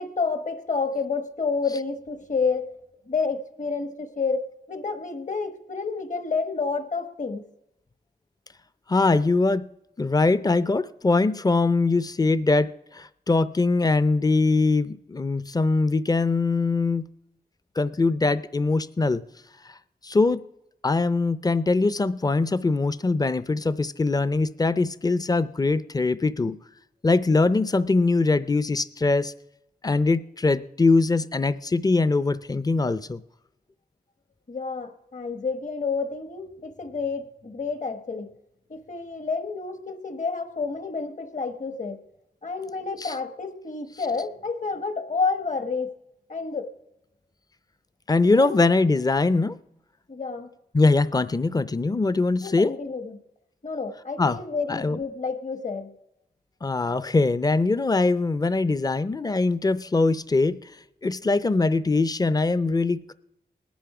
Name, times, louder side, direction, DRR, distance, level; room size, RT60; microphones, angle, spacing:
voice 1, 0.0-2.7 3.1-4.4 4.7-7.4 34.5-38.3 38.7-42.0 42.4-45.9 46.3-46.7 48.4-48.6 50.1-50.5 52.4-53.2 53.6-55.9, left 4 dB, 50° left, 1.2 m, -29 dB
voice 2, 8.9-9.7 10.0-17.1 17.8-19.2 20.0-20.4 20.8-26.6 27.0-29.3 29.8-33.2 43.0-43.1 48.1-49.6 50.7-52.7 54.2-54.4 54.7-55.0 56.6-60.6 61.0-63.1, left 3 dB, 25° left, 0.5 m, -22 dB
19.0 x 10.5 x 4.9 m
wide cardioid pair, 65°, 17 cm